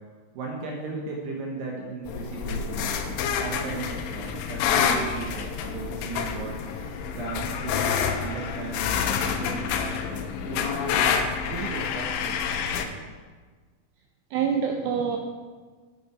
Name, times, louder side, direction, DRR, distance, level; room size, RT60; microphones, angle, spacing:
voice 1, 0.3-11.1 11.5-13.0, right 4 dB, 70° right, -1 dB, 2.7 m, -37 dB
sound 1, 2.1-12.9, left 7 dB, 85° left, 3.1 m, -28 dB
voice 2, 14.3-15.2, right 7 dB, 90° right, 3 dB, 2.4 m, -26 dB
8.9 x 8.5 x 4.7 m, 1.5 s
omnidirectional pair, 5.6 m